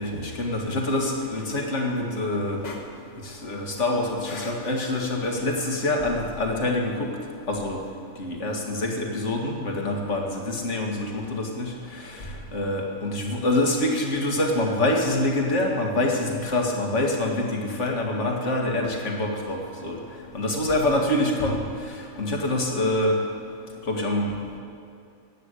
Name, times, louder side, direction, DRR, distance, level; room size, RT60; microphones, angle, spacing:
voice 1, 0.0-2.8 3.4-7.1 7.5-7.8 8.2-11.7 12.5-20.0 20.3-21.6 22.2-23.2 23.9-24.3, left 1 dB, 60° left, 1 dB, 2.2 m, -25 dB
14.0 x 9.5 x 8.2 m, 2.5 s
omnidirectional pair, 1.4 m